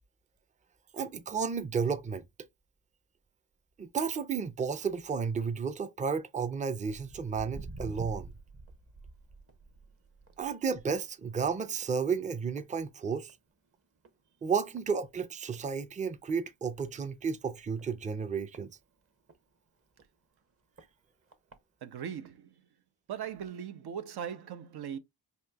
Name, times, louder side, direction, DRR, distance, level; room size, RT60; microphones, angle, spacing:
voice 1, 0.9-2.2 3.8-8.3 10.4-13.4 14.4-18.7, right 5 dB, 20° right, 0.5 m, -32 dB
Walk footsteps, 6.9-13.5 13.8-14.2 14.8-14.9 15.5-15.6 16.0-16.1 16.3-16.4 17.0-17.1 17.8-19.4 20.0-20.1 20.8-20.9 21.3-21.6 22.2-22.3, right 3 dB, 35° right, 0.9 m, -47 dB
voice 2, 21.8-22.6 23.1-25.0, right 8 dB, 75° right, 0.6 m, -39 dB
4.2 x 2.8 x 2.2 m
cardioid pair, 60°, 39 cm